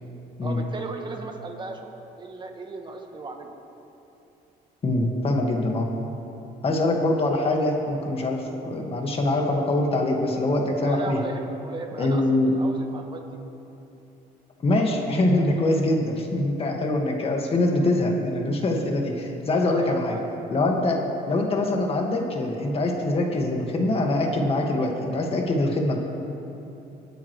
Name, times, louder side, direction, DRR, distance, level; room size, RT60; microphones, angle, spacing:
voice 1, 0.4-1.8 2.2-3.5 10.8-13.4 19.6-20.2, right 3 dB, 25° right, 3 dB, 1.6 m, -36 dB
voice 2, 4.8-5.9 6.6-11.2 12.0-12.5 14.6-20.2 20.5-21.0 21.3-26.0, left 2 dB, 35° left, 1 dB, 1.9 m, -24 dB
24.5 x 9.2 x 3.3 m, 2.9 s
cardioid pair, 110°, 17 cm